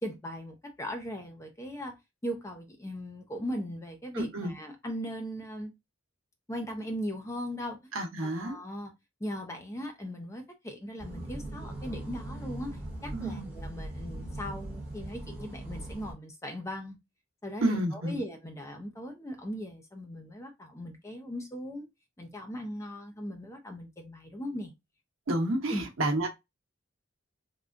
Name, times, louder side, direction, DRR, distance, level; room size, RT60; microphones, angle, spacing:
voice 1, 0.0-1.9 2.2-5.7 6.5-7.8 8.2-8.9 9.2-17.0 17.4-21.9 22.2-24.7 25.7-25.8, equal, 15° left, 0.5 m, -38 dB
voice 2, 4.1-4.5 7.9-8.6 13.1-13.5 17.6-18.2 25.3-26.3, right 1 dB, 80° right, 0.9 m, -30 dB
sound 1, 11.0-16.1, right 1 dB, 5° right, 1.1 m, -40 dB
3.6 x 2.3 x 2.4 m
head